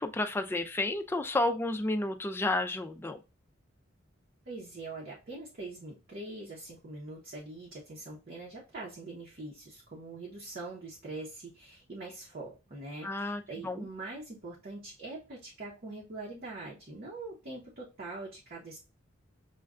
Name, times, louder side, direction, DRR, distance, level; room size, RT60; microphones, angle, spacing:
voice 1, 0.0-3.2 13.0-13.9, left 2 dB, 10° left, 6 dB, 0.3 m, -31 dB
voice 2, 4.5-18.8, right 2 dB, 45° right, -4 dB, 0.8 m, -43 dB
6.3 x 2.2 x 2.4 m, 0.30 s
head